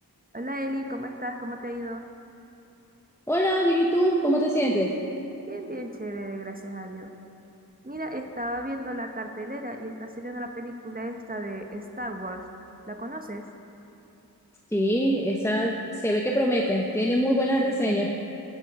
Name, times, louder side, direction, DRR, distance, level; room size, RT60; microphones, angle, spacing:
voice 1, 0.3-2.0 5.4-7.1 7.8-12.5 12.9-13.5, right 1 dB, 25° right, 3 dB, 1.1 m, -34 dB
voice 2, 3.3-4.9 14.7-18.1, equal, 5° left, -1 dB, 1.3 m, -23 dB
18.5 x 14.5 x 5.0 m, 2.9 s
wide cardioid pair, 50°, 37 cm